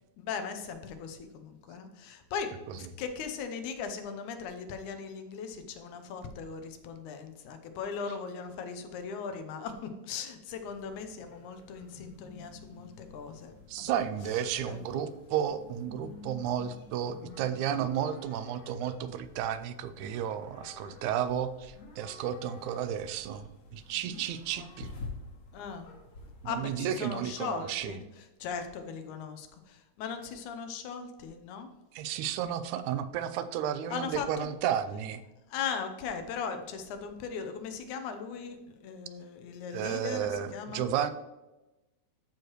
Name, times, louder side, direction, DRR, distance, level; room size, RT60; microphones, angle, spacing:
voice 1, 0.2-13.9 14.7-14.8 24.6-24.7 25.5-25.9 26.5-28.1 28.4-31.7 33.9-34.5 35.5-40.9, left 6 dB, 90° left, 7 dB, 2.3 m, -38 dB
sound 1, 10.5-26.7, left 3 dB, 65° left, 2.6 m, -49 dB
voice 2, 13.7-24.9 26.4-28.0 31.9-35.2 39.7-41.1, right 9 dB, 90° right, 12 dB, 2.0 m, -33 dB
13.0 x 4.8 x 3.0 m, 1.0 s
omnidirectional pair, 3.4 m